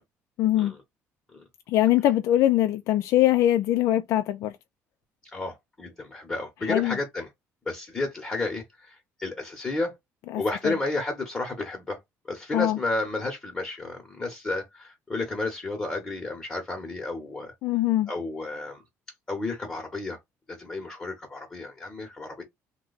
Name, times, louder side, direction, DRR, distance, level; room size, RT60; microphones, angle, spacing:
voice 1, 0.4-0.7 1.7-4.5 6.6-7.0 10.3-10.8 12.5-12.8 17.6-18.1, left 13 dB, 70° left, 0.4 m, -22 dB
voice 2, 5.3-7.3 7.7-9.9 10.4-12.0 12.3-17.5 18.1-18.8 19.3-20.2 20.5-22.4, left 2 dB, 20° left, 0.9 m, -32 dB
2.9 x 2.2 x 3.9 m
cardioid pair, 135°, 5 cm